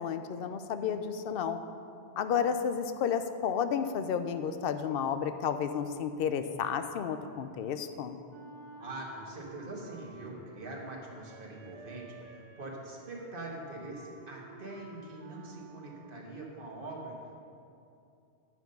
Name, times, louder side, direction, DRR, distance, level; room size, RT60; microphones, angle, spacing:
voice 1, 0.0-1.6 2.2-8.2, left 7 dB, 65° left, 9 dB, 0.7 m, -32 dB
Wind instrument woodwind instrument, 8.3-16.5, right 3 dB, 35° right, 0.5 m, -53 dB
voice 2, 8.7-17.1, right 2 dB, 55° right, -2 dB, 1.6 m, -43 dB
8.5 x 7.1 x 5.4 m, 2.5 s
omnidirectional pair, 1.1 m